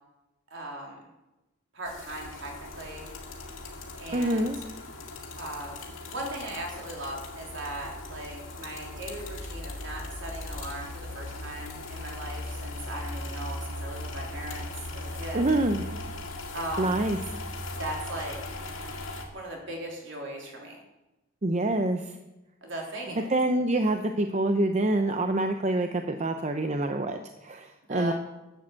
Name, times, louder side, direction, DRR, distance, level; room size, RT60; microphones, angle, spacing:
voice 1, 0.5-1.1 1.7-3.0 4.0-4.5 5.4-15.5 16.5-17.0 17.7-18.4 19.3-20.8 22.6-23.4 27.9-28.1, right 1 dB, 60° right, 0 dB, 3.5 m, -38 dB
sound 1, 1.8-19.3, left 2 dB, 70° left, 2.3 m, -38 dB
voice 2, 4.1-4.6 15.3-15.8 16.8-17.2 21.4-22.0 23.3-28.1, right 2 dB, 35° right, 6 dB, 0.7 m, -26 dB
11.5 x 8.7 x 7.5 m, 1.0 s
head